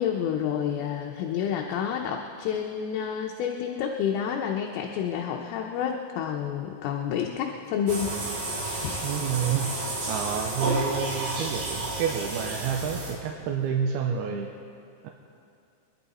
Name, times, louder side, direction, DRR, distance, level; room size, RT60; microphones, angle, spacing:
voice 1, 0.0-8.2 8.5-9.1 14.3-14.4, left 8 dB, 80° left, 1 dB, 2.7 m, -29 dB
sound 1, 7.9-13.4, right 2 dB, 65° right, 4.3 m, -31 dB
voice 2, 9.0-9.7 10.1-14.5 15.0-15.1, right 7 dB, 85° right, 2 dB, 2.6 m, -29 dB
24.0 x 11.0 x 4.2 m, 2.4 s
omnidirectional pair, 4.6 m